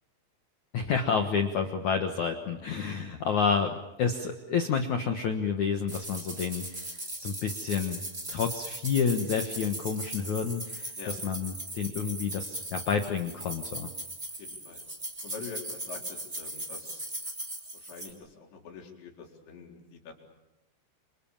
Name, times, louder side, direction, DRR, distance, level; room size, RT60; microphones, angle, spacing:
voice 1, 0.7-8.0 8.3-13.9, left 6 dB, 80° left, 6 dB, 1.7 m, -29 dB
sound 1, 5.9-18.1, right 1 dB, 10° right, 4.2 m, -39 dB
voice 2, 14.3-14.8 15.2-17.1 17.7-20.1, left 5 dB, 65° left, 1 dB, 6.4 m, -45 dB
29.0 x 26.5 x 7.3 m, 0.94 s
omnidirectional pair, 5.7 m